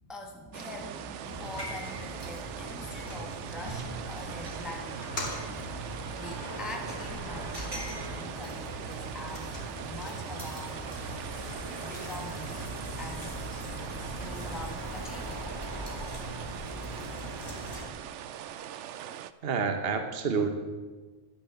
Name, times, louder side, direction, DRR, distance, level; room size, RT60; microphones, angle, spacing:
voice 1, 0.1-5.1 6.2-9.6 9.8-10.8 11.8-12.6 13.0-13.4 14.2-15.5, left 2 dB, ahead, 1 dB, 1.3 m, -44 dB
sound 1, 0.5-19.3, right 10 dB, 70° right, 0.9 m, -42 dB
sound 2, 1.2-17.9, right 1 dB, 20° right, 2.0 m, -39 dB
sound 3, 4.9-8.4 8.7-10.7, left 2 dB, 60° left, 2.8 m, -44 dB
voice 2, 19.4-20.5, right 5 dB, 50° right, 6 dB, 1.2 m, -28 dB
11.0 x 10.0 x 7.0 m, 1.3 s
omnidirectional pair, 1.3 m